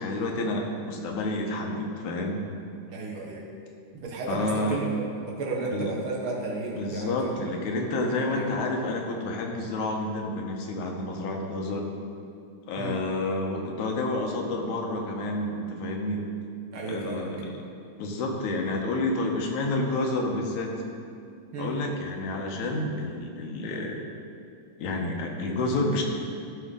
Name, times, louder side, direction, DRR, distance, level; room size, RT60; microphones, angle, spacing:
voice 1, 0.0-2.5 4.3-4.8 5.7-5.9 6.8-11.9 12.7-16.2 16.8-17.5 18.0-20.7 21.6-24.1 24.8-26.0, left 2 dB, 80° left, 1 dB, 2.3 m, -29 dB
voice 2, 2.9-3.4 4.0-4.9 5.3-7.3 8.3-8.5 12.8-12.9 16.7-17.3 21.5-21.7, right 3 dB, 60° right, -2 dB, 1.5 m, -33 dB
13.5 x 5.7 x 3.7 m, 2.4 s
omnidirectional pair, 3.5 m